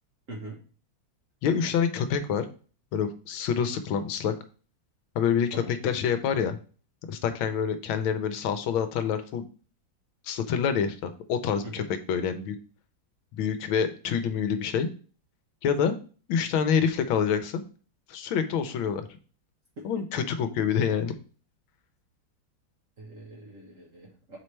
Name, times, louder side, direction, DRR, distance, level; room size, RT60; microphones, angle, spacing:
voice 1, 0.3-0.6 5.5-5.7 11.6-11.9 23.0-24.4, right 2 dB, 45° right, -2 dB, 1.4 m, -42 dB
voice 2, 1.4-2.5 2.9-4.3 5.1-6.6 7.1-9.4 10.2-11.8 12.1-12.6 13.3-14.9 15.6-16.0 16.3-17.6 18.1-19.1 19.8-21.1, left 7 dB, 80° left, 9 dB, 1.4 m, -27 dB
7.5 x 4.2 x 3.2 m, 0.40 s
omnidirectional pair, 2.2 m